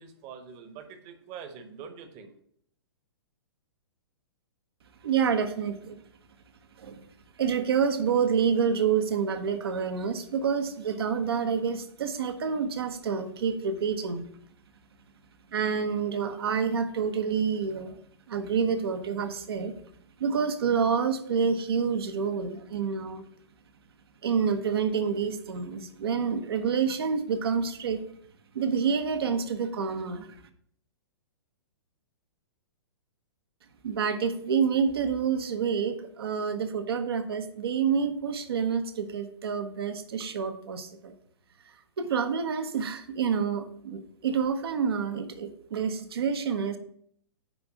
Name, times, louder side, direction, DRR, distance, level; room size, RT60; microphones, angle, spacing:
voice 1, 0.0-2.3, right 7 dB, 35° right, 7 dB, 1.2 m, -44 dB
voice 2, 5.0-6.0 6.8-7.1 7.4-14.3 15.5-18.0 18.3-19.7 20.2-23.2 24.2-28.0 28.5-30.3 33.8-41.1 42.0-46.8, right 6 dB, 60° right, 7 dB, 1.0 m, -28 dB
9.4 x 3.5 x 6.0 m, 0.64 s
figure-of-eight pair, 115°, 14 cm